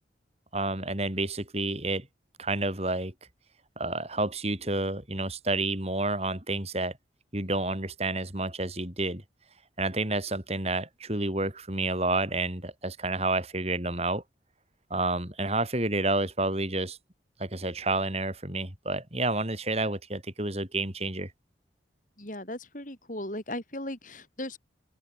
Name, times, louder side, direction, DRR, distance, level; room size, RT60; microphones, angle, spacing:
voice 1, 0.5-2.1 2.4-3.1 3.8-6.9 7.3-9.2 9.8-14.2 14.9-17.0 17.4-21.3, right 2 dB, 35° right, 6.5 m, -29 dB
voice 2, 22.2-24.6, left 1 dB, 45° left, 7.8 m, -37 dB
open air
head